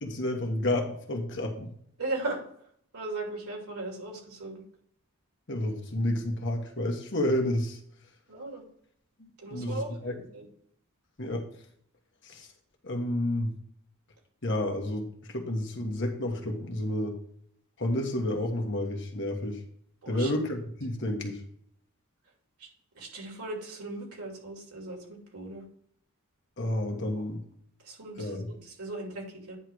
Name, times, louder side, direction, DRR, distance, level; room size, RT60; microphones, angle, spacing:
voice 1, 0.0-1.7 5.5-7.8 9.2-10.1 11.2-11.4 12.2-12.5 12.8-13.5 14.4-17.1 17.8-19.6 20.1-21.4 26.6-27.4 28.2-28.5, left 1 dB, 55° left, 2 dB, 1.4 m, -30 dB
voice 2, 2.0-2.4 2.9-4.6 8.3-8.6 9.4-10.5 20.0-20.3 22.6-22.7 22.9-25.6 27.1-27.2 27.8-29.6, right 2 dB, 85° right, 0 dB, 2.7 m, -38 dB
9.8 x 3.3 x 6.2 m, 0.66 s
head